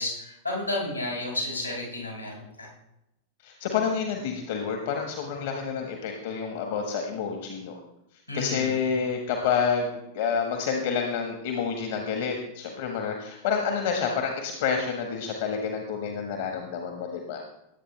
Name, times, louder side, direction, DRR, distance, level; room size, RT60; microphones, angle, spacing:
voice 1, 0.0-2.7 8.3-8.8, left 2 dB, 85° left, -3 dB, 5.6 m, -32 dB
voice 2, 3.4-7.8 8.3-17.4, left 6 dB, 55° left, 3 dB, 1.6 m, -29 dB
18.5 x 8.6 x 3.4 m, 0.87 s
figure-of-eight pair, 90°, 0 cm